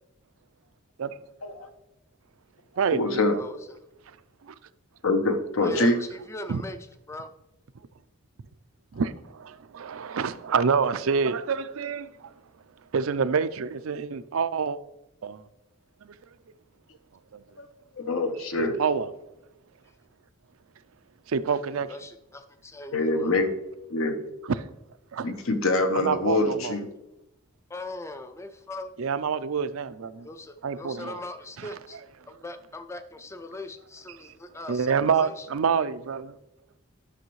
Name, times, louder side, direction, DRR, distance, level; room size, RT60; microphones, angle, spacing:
voice 1, 2.7-3.4 5.0-6.1 17.6-18.8 22.9-23.6 23.9-24.2 25.2-26.9, left 2 dB, 80° left, 0.9 m, -25 dB
voice 2, 6.3-6.8 7.1-7.3 21.7-23.3 27.7-28.9 30.2-32.0 32.3-35.5, left 2 dB, 15° left, 0.4 m, -40 dB
voice 3, 8.9-12.3 12.9-14.8 15.2-15.4 16.0-16.1 17.3-17.4 18.8-19.1 21.3-21.9 25.1-25.2 26.0-26.6 29.0-30.3 30.6-31.2 31.6-31.7 34.2-34.4 34.7-36.3, right 6 dB, 80° right, 0.4 m, -27 dB
11.5 x 6.3 x 3.1 m
head